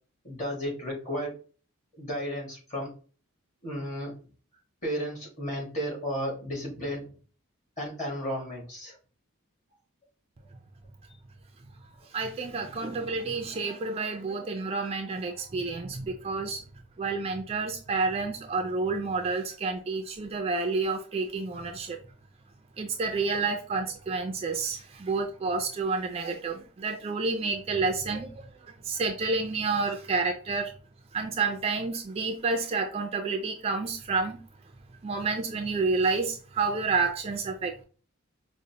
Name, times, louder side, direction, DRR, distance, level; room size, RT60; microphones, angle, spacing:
voice 1, 0.2-1.3 2.0-2.9 3.6-4.1 4.8-7.0 7.8-9.0, equal, 35° left, -2 dB, 1.4 m, -33 dB
voice 2, 12.1-16.6 17.0-22.0 22.8-28.5 28.8-30.7 31.1-34.4 35.0-37.8, right 4 dB, 25° right, 4 dB, 0.3 m, -29 dB
5.0 x 2.1 x 2.8 m, 0.39 s
head